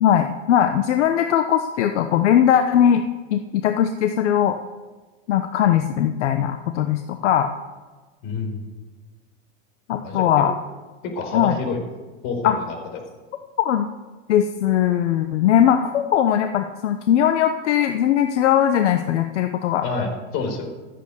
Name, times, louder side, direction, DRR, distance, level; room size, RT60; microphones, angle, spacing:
voice 1, 0.0-3.0 3.3-4.6 5.3-7.5 9.9-10.5 11.3-11.6 12.4-12.6 13.6-13.9 14.3-19.8, left 10 dB, 90° left, 7 dB, 1.0 m, -19 dB
voice 2, 8.2-8.6 10.0-10.2 11.1-11.8 12.2-12.7 19.8-20.7, left 4 dB, 60° left, 4 dB, 4.5 m, -27 dB
15.0 x 8.2 x 8.2 m, 1.3 s
supercardioid pair, 120°, 34 cm